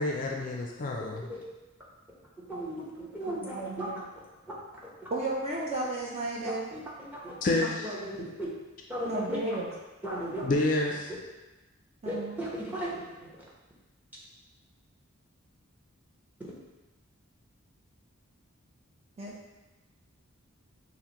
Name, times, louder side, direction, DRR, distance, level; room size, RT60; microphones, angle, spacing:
voice 1, 0.0-1.3 7.4-8.0 10.4-11.1, left 2 dB, 40° left, 0 dB, 0.4 m, -28 dB
voice 2, 1.0-1.4 2.5-3.9 7.2-7.3 8.0-8.5 8.9-9.2 10.0-10.4 12.1-12.9, right 1 dB, 10° right, -6 dB, 0.8 m, -35 dB
voice 3, 3.3-4.0 5.1-6.7 9.0-9.7 12.0-12.4 19.2-19.3, right 2 dB, 30° right, -3 dB, 0.5 m, -33 dB
5.7 x 2.1 x 3.0 m, 1.1 s
head